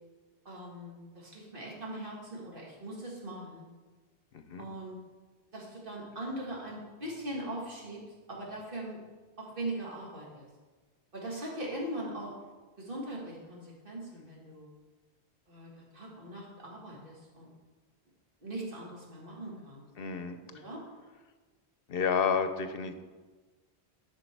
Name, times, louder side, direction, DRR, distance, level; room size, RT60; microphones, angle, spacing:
voice 1, 0.5-3.6 4.6-4.9 5.5-8.0 8.3-9.0 9.4-10.5 11.1-12.3 12.8-14.7 15.5-17.5 18.4-19.8 20.5-20.8, right 1 dB, 55° right, -3 dB, 2.4 m, -40 dB
voice 2, 4.3-4.7 20.0-20.4 21.9-22.9, left 6 dB, 65° left, 9 dB, 0.9 m, -30 dB
12.0 x 6.4 x 4.6 m, 1.3 s
omnidirectional pair, 1.1 m